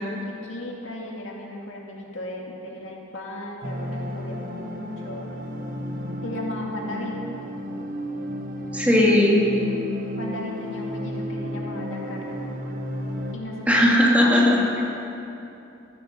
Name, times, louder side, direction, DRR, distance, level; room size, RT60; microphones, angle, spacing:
voice 1, 0.3-5.3 6.2-7.1 9.5-9.9 10.2-12.4 13.3-13.8 14.2-14.8, left 1 dB, 65° left, -2 dB, 2.2 m, -36 dB
sound 1, 3.6-13.3, left 1 dB, 40° right, 1.1 m, -33 dB
voice 2, 8.7-9.4 13.7-14.6, left 1 dB, 5° right, -3 dB, 2.0 m, -17 dB
14.0 x 13.5 x 5.4 m, 2.8 s
head